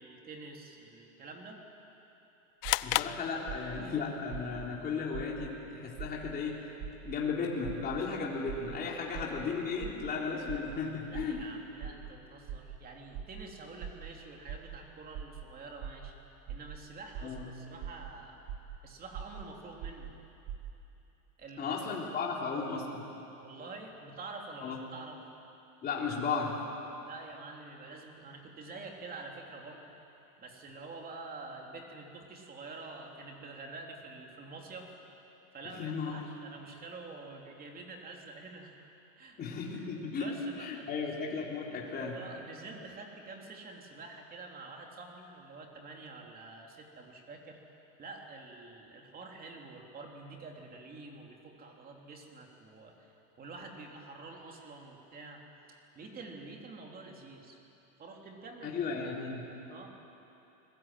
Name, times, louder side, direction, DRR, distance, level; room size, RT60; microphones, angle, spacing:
voice 1, 0.0-1.6 8.9-9.3 11.1-16.1 16.5-18.4 18.8-20.1 21.4-21.9 23.3-25.2 27.0-29.9 30.4-34.9 35.5-38.7 39.2-39.4 39.7-41.1 42.1-47.6 48.0-55.4 55.7-57.6 58.0-59.0 59.7-59.9, right 3 dB, 20° right, 1 dB, 3.1 m, -47 dB
sound 1, 2.6-4.0, left 18 dB, 50° left, 0.6 m, -33 dB
sound 2, 2.6-3.0 3.5-3.8 4.3-4.7 5.1-5.5 6.0-6.3 6.8-7.1 7.6-8.0 8.5-8.8 9.1-9.4 9.8-10.1 10.5-10.8 11.1-11.4 11.8-12.1 12.5-12.8 13.1-13.4 13.8-14.1 14.5-14.8 15.1-15.4 15.8-16.1 16.5-16.8 17.1-17.4 17.8-18.1 18.5-18.8 19.1-19.4 19.8-20.1 20.5-20.7, right 9 dB, 45° right, 2.1 m, -41 dB
voice 2, 2.8-6.7 7.0-11.4 17.2-17.5 21.6-23.0 24.6-24.8 25.8-26.6 35.6-36.2 39.4-40.3 40.6-42.2 58.6-59.5, left 5 dB, 20° left, -3 dB, 3.7 m, -35 dB
29.0 x 21.0 x 9.2 m, 3.0 s
supercardioid pair, 170°, 42 cm